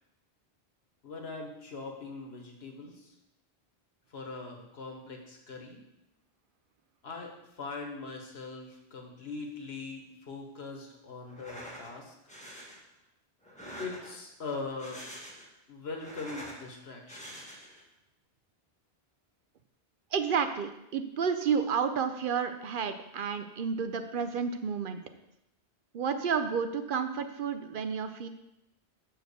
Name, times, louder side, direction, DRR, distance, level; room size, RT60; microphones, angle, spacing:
voice 1, 1.0-3.1 4.1-5.8 7.0-12.1 13.8-15.0 15.7-17.3, left 3 dB, 75° left, 2 dB, 1.4 m, -41 dB
sound 1, 11.3-11.9 12.3-12.8 13.4-14.3 14.7-15.6 15.9-16.6 17.1-17.8, equal, 5° left, 1.2 m, -45 dB
voice 2, 20.1-25.0 25.9-28.3, right 6 dB, 60° right, 8 dB, 0.7 m, -31 dB
6.0 x 4.7 x 6.7 m, 0.86 s
omnidirectional pair, 1.1 m